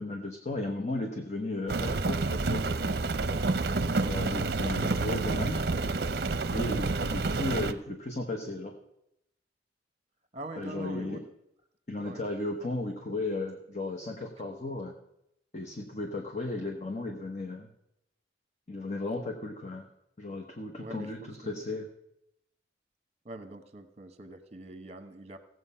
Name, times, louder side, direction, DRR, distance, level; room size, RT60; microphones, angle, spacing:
voice 1, 0.0-2.6 4.0-5.6 6.5-8.7 10.6-11.3 11.9-14.9 15.5-17.7 18.7-19.9 20.2-21.9, left 2 dB, 40° left, 3 dB, 1.1 m, -35 dB
Rain, 1.7-7.7, right 3 dB, 60° right, 0.6 m, -29 dB
voice 2, 10.3-11.2 12.0-12.2 20.8-21.6 23.2-25.4, right 2 dB, 35° right, 9 dB, 1.2 m, -44 dB
16.5 x 8.0 x 5.6 m, 0.81 s
head